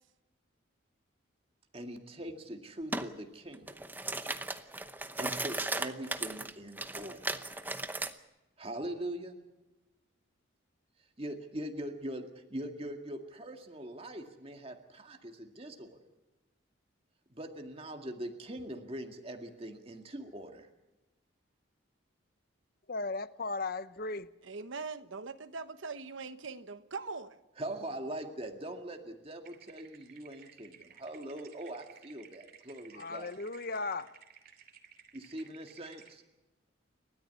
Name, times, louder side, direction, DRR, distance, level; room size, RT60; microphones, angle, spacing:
voice 1, 1.7-3.8 5.2-7.4 8.6-9.4 11.2-16.0 17.3-20.7 27.6-33.3 35.1-36.2, right 1 dB, 30° right, 2.0 m, -42 dB
sound 1, 2.9-3.1 3.5-8.1, right 2 dB, 10° right, 0.8 m, -36 dB
voice 2, 22.9-24.3 32.9-34.2, left 3 dB, 45° left, 0.8 m, -36 dB
voice 3, 24.4-27.4, right 4 dB, 70° right, 1.1 m, -41 dB
sound 2, 29.4-36.1, right 8 dB, 45° right, 2.7 m, -57 dB
29.5 x 13.5 x 8.4 m
head